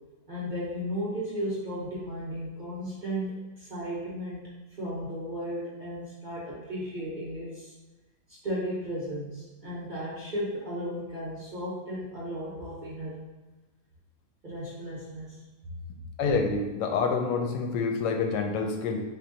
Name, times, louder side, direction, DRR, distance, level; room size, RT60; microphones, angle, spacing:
voice 1, 0.3-4.5 4.8-7.7 8.3-13.2 14.4-15.4, equal, 35° right, -7 dB, 0.9 m, -35 dB
voice 2, 16.2-19.0, left 4 dB, 90° left, 3 dB, 1.2 m, -27 dB
3.6 x 2.8 x 3.8 m, 1.1 s
omnidirectional pair, 1.8 m